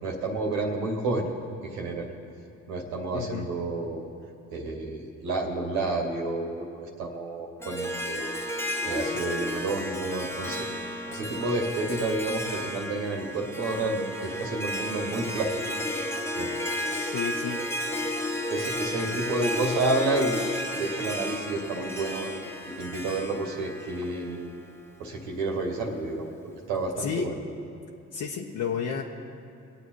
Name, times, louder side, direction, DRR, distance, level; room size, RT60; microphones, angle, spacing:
voice 1, 0.0-1.3 1.6-2.1 2.7-4.0 4.5-8.3 8.8-10.7 11.1-15.5 16.4-16.5 18.5-24.5 25.0-27.3, right 2 dB, 85° right, 0 dB, 2.3 m, -30 dB
voice 2, 3.1-3.5 16.9-17.7 27.0-27.3 28.1-29.0, left 6 dB, 60° left, -2 dB, 1.2 m, -31 dB
Harp, 7.6-24.9, left 1 dB, 5° left, 1.3 m, -33 dB
21.5 x 8.3 x 4.7 m, 2.6 s
hypercardioid pair, 60°, 34 cm